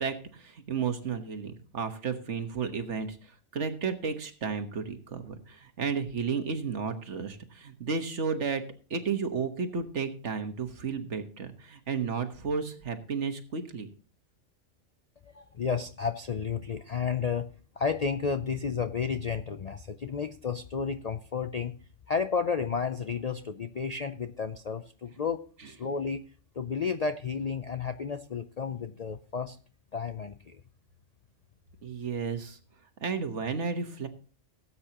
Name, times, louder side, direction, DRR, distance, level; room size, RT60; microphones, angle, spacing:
voice 1, 0.0-8.6 8.9-13.9 31.8-32.6 33.0-34.1, right 5 dB, 65° right, 8 dB, 1.6 m, -33 dB
voice 2, 15.2-17.5 17.8-21.8 22.1-26.3 26.6-29.6 29.9-30.6, left 6 dB, 50° left, 9 dB, 0.4 m, -32 dB
18.0 x 8.6 x 2.9 m, 0.38 s
omnidirectional pair, 1.3 m